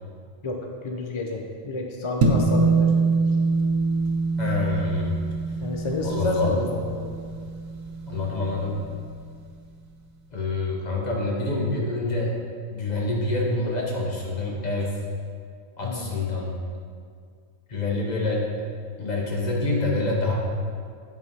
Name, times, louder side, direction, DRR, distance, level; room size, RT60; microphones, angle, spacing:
voice 1, 0.4-2.9 5.6-7.2 15.8-16.2, left 2 dB, 50° left, 2 dB, 0.3 m, -30 dB
sound 1, 2.2-8.8, right 3 dB, 65° right, 1.2 m, -24 dB
voice 2, 4.4-5.2 6.0-6.5 8.1-8.8 10.3-12.3 12.7-15.0 15.8-16.5 17.7-18.5 19.0-20.3, left 2 dB, 30° left, -2 dB, 1.2 m, -26 dB
8.7 x 4.8 x 5.3 m, 2.2 s
omnidirectional pair, 1.5 m